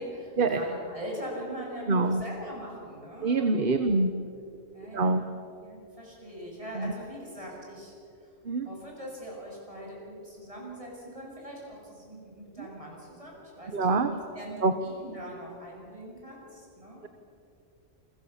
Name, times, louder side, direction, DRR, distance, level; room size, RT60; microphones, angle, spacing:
voice 1, 0.0-3.9 4.7-5.3 5.5-7.9 8.2-8.3 8.6-17.0, equal, 25° right, -2 dB, 7.7 m, -42 dB
voice 2, 1.9-2.2 3.2-4.1 4.9-5.2 6.8-6.9 8.4-8.7 12.6-12.7 13.7-14.1 14.6-14.7, right 3 dB, 45° right, 8 dB, 1.3 m, -25 dB
29.0 x 23.0 x 7.2 m, 2.7 s
omnidirectional pair, 1.2 m